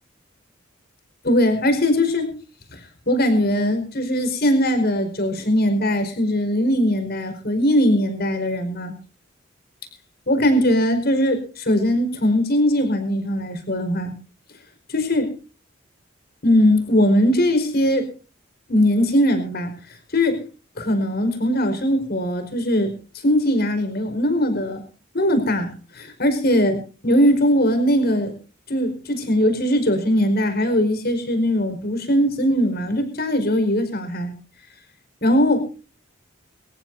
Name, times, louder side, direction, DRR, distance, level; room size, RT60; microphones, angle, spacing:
voice 1, 1.2-2.3 2.7-8.9 10.3-14.1 14.9-15.3 16.4-18.1 18.7-19.7 20.1-20.4 20.8-22.9 23.2-24.8 25.1-28.3 28.7-34.3 35.2-35.6, equal, 50° left, 8 dB, 5.0 m, -20 dB
26.0 x 15.0 x 2.7 m, 0.37 s
head